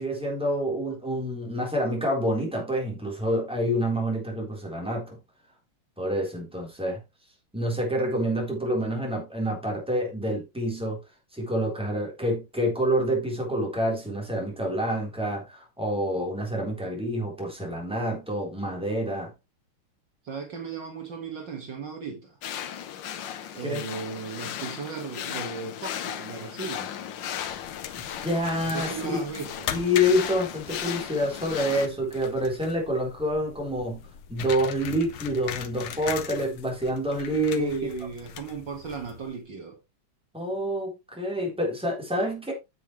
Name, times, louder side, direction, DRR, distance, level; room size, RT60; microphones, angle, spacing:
voice 1, 0.0-5.2 6.0-7.0 7.5-11.0 11.3-19.3 23.6-23.8 28.2-29.2 29.7-34.0 34.3-37.7 40.3-42.5, equal, ahead, 3.7 m, -27 dB
voice 2, 20.2-22.4 23.5-26.9 28.6-29.8 37.6-39.8, right 5 dB, 60° right, 2.3 m, -36 dB
sound 1, 22.4-31.9, left 9 dB, 65° left, 1.5 m, -36 dB
sound 2, 27.3-39.4, left 10 dB, 85° left, 1.8 m, -40 dB
9.2 x 8.2 x 3.2 m
omnidirectional pair, 2.4 m